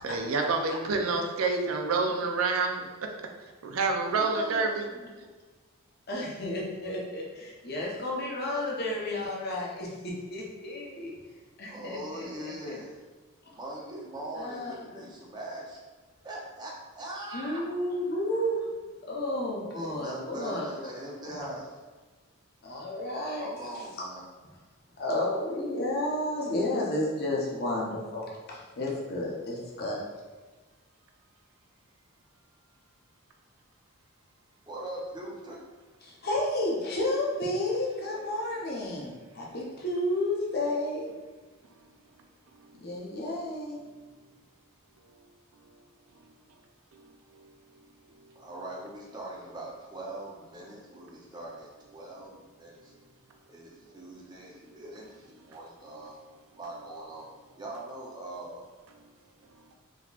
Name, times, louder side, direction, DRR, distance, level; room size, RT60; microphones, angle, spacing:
voice 1, 0.0-2.9 3.6-4.9, right 4 dB, 70° right, 3 dB, 0.4 m, -27 dB
voice 2, 4.1-4.8 6.1-11.1 11.6-12.5 14.4-15.0 17.3-18.7 19.0-21.1 21.3-21.5 22.6-23.5 25.0-30.0 36.2-41.1 42.8-43.8, left 1 dB, 45° left, -3 dB, 0.7 m, -32 dB
voice 3, 11.6-13.0 13.5-15.8 16.2-17.6 19.7-21.7 23.3-24.2 34.7-35.6 48.4-52.9 53.5-56.2 56.5-57.3 57.6-58.6, right 1 dB, 20° right, -3 dB, 0.5 m, -41 dB
3.8 x 2.9 x 2.3 m, 1.3 s
head